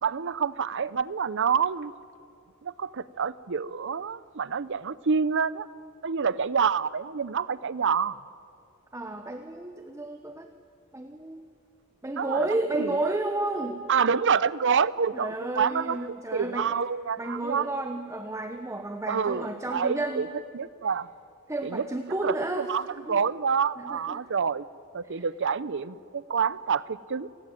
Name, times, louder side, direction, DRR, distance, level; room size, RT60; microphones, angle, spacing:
voice 1, 0.0-1.9 2.6-5.7 6.0-8.2 12.1-12.5 12.8-13.1 13.9-17.7 19.1-20.3 20.5-21.1 21.6-21.8 22.2-24.6 24.9-27.3, right 6 dB, 60° right, 18 dB, 0.7 m, -27 dB
voice 2, 8.9-10.5 10.9-11.4 12.0-13.9 15.1-16.8 17.2-20.3 21.5-22.7 23.1-23.2 23.8-24.2 25.0-25.2, right 2 dB, 15° right, 6 dB, 1.1 m, -32 dB
28.5 x 18.0 x 9.2 m, 2.5 s
head